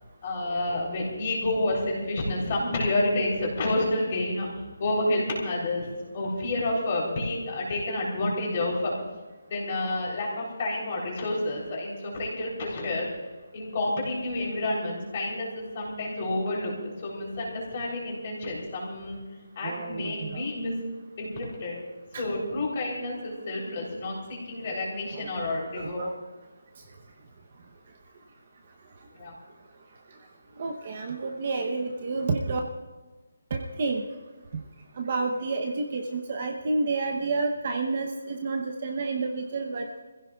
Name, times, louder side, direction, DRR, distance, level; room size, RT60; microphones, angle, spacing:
voice 1, 0.2-4.5 4.8-5.9 6.1-8.9 9.5-13.1 13.5-19.2 19.5-20.7 21.2-21.7 22.1-26.0 29.1-29.3, left 2 dB, 25° left, -2 dB, 3.3 m, -29 dB
voice 2, 19.6-20.5 22.1-22.2 23.1-23.4 25.1-25.3 25.7-26.1 30.6-32.6 33.5-34.0 35.0-40.0, right 3 dB, 25° right, 3 dB, 0.8 m, -30 dB
27.0 x 15.5 x 2.3 m, 1.3 s
hypercardioid pair, 180°, 0 cm